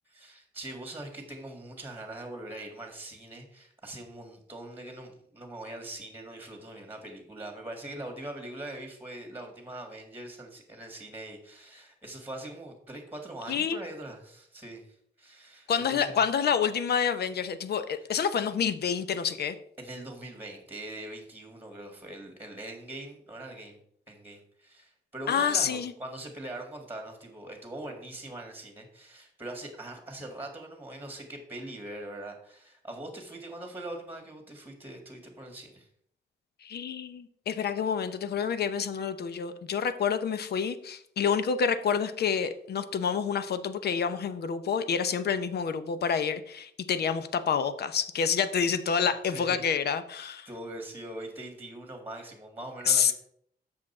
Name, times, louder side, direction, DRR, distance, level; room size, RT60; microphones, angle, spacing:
voice 1, 0.1-16.2 18.0-18.1 19.8-23.8 24.1-35.9 49.2-49.6 50.5-53.1, right 1 dB, 10° right, 3 dB, 1.7 m, -42 dB
voice 2, 13.5-13.8 15.7-19.6 25.3-25.9 36.6-50.5 52.9-53.1, left 7 dB, 60° left, 11 dB, 0.7 m, -28 dB
7.5 x 6.2 x 4.3 m, 0.67 s
cardioid pair, 115°, 19 cm